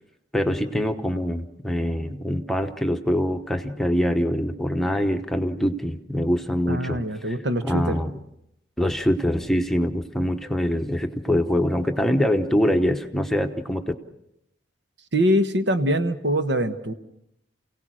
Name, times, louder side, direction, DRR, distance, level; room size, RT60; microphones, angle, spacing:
voice 1, 0.3-7.3 7.6-8.1 8.8-13.8, equal, ahead, 5 dB, 1.0 m, -24 dB
voice 2, 6.7-8.0 15.1-16.9, equal, 70° right, 8 dB, 1.3 m, -23 dB
28.5 x 17.5 x 6.3 m, 0.82 s
head